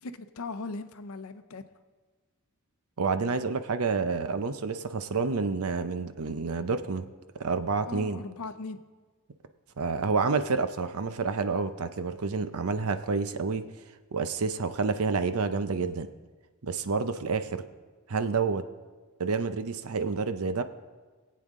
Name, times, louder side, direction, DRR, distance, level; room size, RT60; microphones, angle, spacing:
voice 1, 0.0-1.6 7.9-8.8, left 3 dB, 80° left, 11 dB, 0.7 m, -38 dB
voice 2, 3.0-7.1 7.4-8.2 9.8-13.6 14.1-16.1 16.6-17.6 18.1-18.6 19.2-20.6, right 4 dB, 90° right, 10 dB, 0.7 m, -29 dB
20.0 x 8.5 x 3.7 m, 1.4 s
head